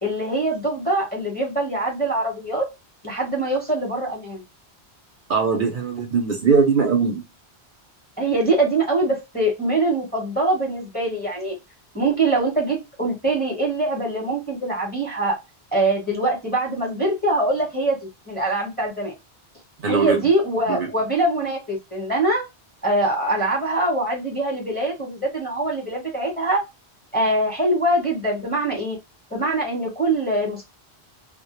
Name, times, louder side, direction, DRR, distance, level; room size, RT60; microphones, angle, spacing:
voice 1, 0.0-2.7 3.0-4.4 8.2-11.5 11.9-15.4 15.7-18.0 18.3-19.1 19.9-22.4 22.8-26.6 27.1-29.0 29.3-30.7, right 2 dB, 10° left, 0.8 m, -23 dB
voice 2, 5.3-7.2 19.8-20.2 20.7-20.9, right 5 dB, 60° right, 0.7 m, -20 dB
2.1 x 2.0 x 2.9 m
omnidirectional pair, 1.1 m